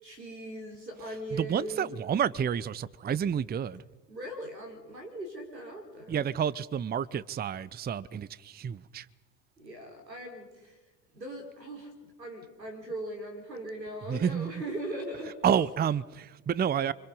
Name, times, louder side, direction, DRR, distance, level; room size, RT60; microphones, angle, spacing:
voice 1, 0.0-1.9 4.1-6.2 9.6-10.8 11.1-15.4, right 1 dB, 90° right, 5.0 m, -40 dB
voice 2, 1.3-3.8 6.1-9.1 14.1-14.6 15.4-16.9, right 8 dB, 20° right, 0.7 m, -29 dB
29.0 x 25.0 x 5.5 m
figure-of-eight pair, 65°, 49 cm